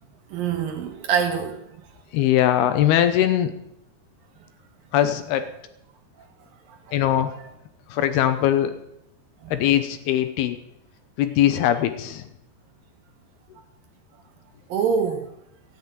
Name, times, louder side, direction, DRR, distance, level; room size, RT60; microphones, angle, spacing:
voice 1, 0.3-1.6 6.7-6.8 9.4-9.6 14.7-15.2, right 7 dB, 65° right, 5 dB, 2.5 m, -24 dB
voice 2, 2.1-3.5 4.9-5.4 6.9-7.3 7.9-8.7 9.5-10.6 11.2-12.2, left 11 dB, 80° left, 9 dB, 2.7 m, -21 dB
15.0 x 7.7 x 9.2 m, 0.82 s
omnidirectional pair, 4.9 m